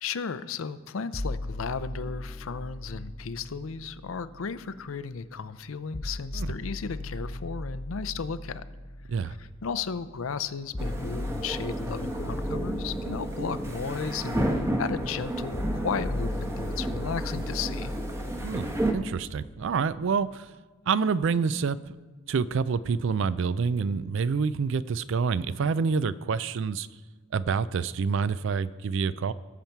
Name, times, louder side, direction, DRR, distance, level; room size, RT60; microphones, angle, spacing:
voice 1, 0.0-8.6 9.2-17.9, left 5 dB, 75° left, 13 dB, 0.5 m, -34 dB
sound 1, 1.1-5.1 5.9-20.0, left 1 dB, 20° left, 0.5 m, -38 dB
sound 2, 10.8-18.9, right 1 dB, 15° right, 0.9 m, -32 dB
voice 2, 18.4-20.5 20.9-22.0 22.3-26.9 27.3-29.3, right 5 dB, 65° right, 17 dB, 0.4 m, -27 dB
17.5 x 7.2 x 4.5 m, 1.3 s
head